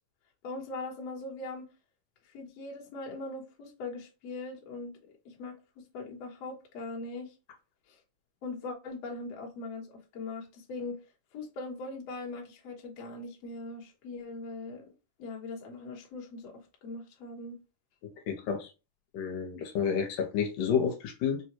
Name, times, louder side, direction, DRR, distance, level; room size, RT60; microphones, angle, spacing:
voice 1, 0.4-1.7 2.3-4.9 5.3-5.5 5.9-7.3 7.9-8.0 8.4-11.0 11.3-14.9 15.2-17.6, left 3 dB, 60° left, 1.8 m, -40 dB
voice 2, 18.3-18.7 19.1-21.4, left 7 dB, 80° left, 2.3 m, -30 dB
6.6 x 2.2 x 3.0 m
omnidirectional pair, 3.9 m